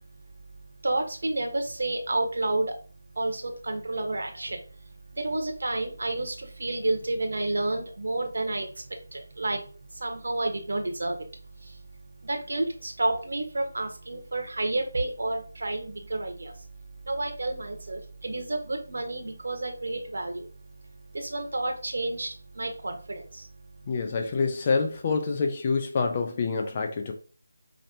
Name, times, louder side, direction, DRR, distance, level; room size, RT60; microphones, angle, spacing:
voice 1, 0.8-2.7 3.2-4.6 5.1-8.7 9.1-9.6 9.9-11.2 11.6-11.8 12.2-16.5 17.0-20.5 21.1-23.5, right 2 dB, 65° right, 1.1 m, -30 dB
voice 2, 23.9-27.1, left 4 dB, 30° left, 0.6 m, -27 dB
5.1 x 2.9 x 2.7 m
figure-of-eight pair, 165°, 0 cm